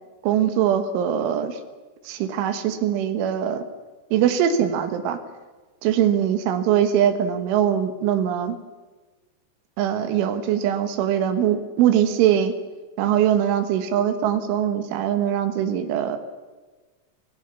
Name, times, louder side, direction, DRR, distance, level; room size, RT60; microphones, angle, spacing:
voice 1, 0.2-1.6 2.1-3.7 4.1-5.2 5.8-8.6 9.8-12.5 13.0-16.2, right 10 dB, 85° right, 8 dB, 3.8 m, -22 dB
26.0 x 18.0 x 7.1 m, 1.3 s
omnidirectional pair, 5.4 m